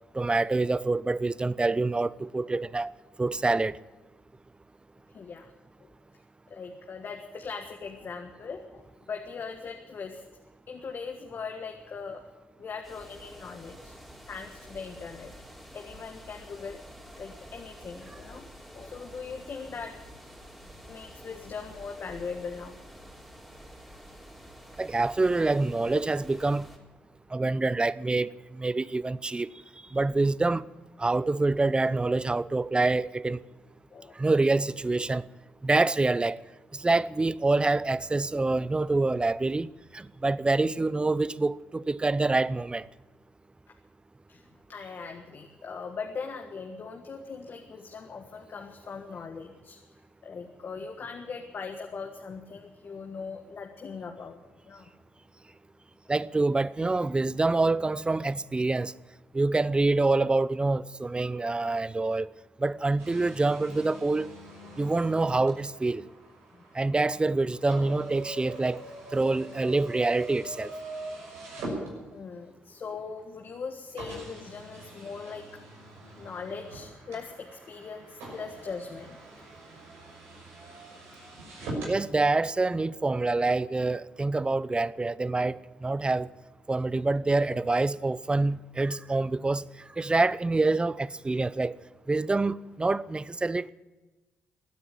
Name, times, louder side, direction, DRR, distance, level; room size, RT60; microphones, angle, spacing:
voice 1, 0.1-2.9 3.2-3.8 24.8-26.7 27.3-28.3 28.6-29.5 29.9-30.6 31.0-33.4 34.2-35.3 35.6-36.4 36.7-39.7 39.9-42.9 56.1-58.9 59.3-62.3 62.6-64.3 64.8-66.0 66.7-68.8 69.1-70.7 81.9-86.3 86.7-89.6 90.0-91.7 92.1-93.7, right 3 dB, 20° right, 0.6 m, -26 dB
voice 2, 5.1-5.5 5.8-5.9 6.5-10.3 10.7-12.2 12.6-13.9 14.3-15.3 15.7-16.8 17.2-20.0 20.9-22.8 33.9-34.2 44.3-49.8 50.2-54.4 54.6-54.9 66.5-66.6 72.1-75.6 76.2-79.2, left 5 dB, 50° left, 1.6 m, -40 dB
sound 1, 12.8-26.8, equal, 5° right, 4.0 m, -49 dB
sound 2, 63.0-72.5 73.2-73.3 74.0-82.0, right 2 dB, 80° right, 6.2 m, -43 dB
16.5 x 9.9 x 8.8 m
hypercardioid pair, 50°, 4 cm